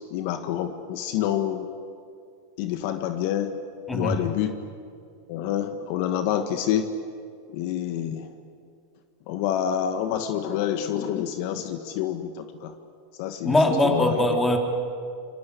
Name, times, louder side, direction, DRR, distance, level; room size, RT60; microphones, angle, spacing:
voice 1, 0.1-1.7 2.6-3.5 3.9-4.6 5.3-6.9 7.5-8.3 9.3-12.7 13.2-14.2, left 10 dB, 60° left, 8 dB, 1.7 m, -27 dB
voice 2, 3.9-4.2 13.4-14.6, left 1 dB, 10° left, 3 dB, 3.4 m, -21 dB
28.0 x 23.0 x 8.5 m, 2.4 s
supercardioid pair, 120°, 0 cm